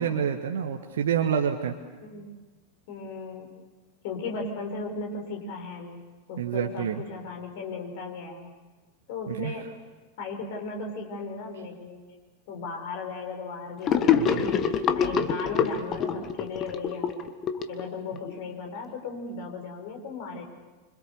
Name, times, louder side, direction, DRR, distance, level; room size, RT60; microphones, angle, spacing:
voice 1, 0.0-1.7 6.4-7.0 9.3-9.5 14.1-14.4, right 8 dB, 60° right, 4 dB, 1.5 m, -28 dB
voice 2, 2.0-2.4 2.9-3.5 4.0-6.0 6.3-8.5 9.1-9.7 10.2-12.0 12.5-14.5 14.9-17.3 17.7-20.4, left 4 dB, 50° left, 3 dB, 5.5 m, -36 dB
Gurgling / Sink (filling or washing), 13.9-18.3, left 7 dB, 30° left, 1.7 m, -25 dB
27.0 x 26.0 x 6.9 m, 1.3 s
figure-of-eight pair, 90°, 0 cm